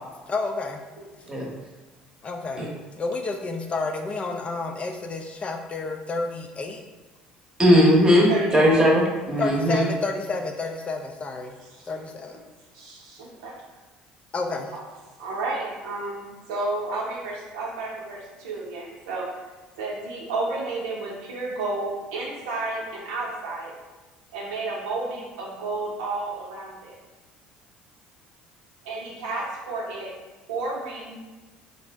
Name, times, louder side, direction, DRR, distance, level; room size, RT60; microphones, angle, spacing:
voice 1, 0.3-0.8 2.2-2.7 3.0-6.8 9.4-11.5 11.9-12.4 14.3-14.7, left 3 dB, 30° left, 3 dB, 0.3 m, -30 dB
voice 2, 7.6-9.8, equal, 20° right, -2 dB, 0.8 m, -18 dB
voice 3, 8.3-8.8 11.7-12.1 12.7-13.5 14.7-14.8 15.2-19.3 19.8-23.7 24.3-27.0 28.8-30.1 30.5-31.1, right 3 dB, 80° right, -3 dB, 0.6 m, -31 dB
2.5 x 2.0 x 3.3 m, 1.2 s
hypercardioid pair, 75°, 4 cm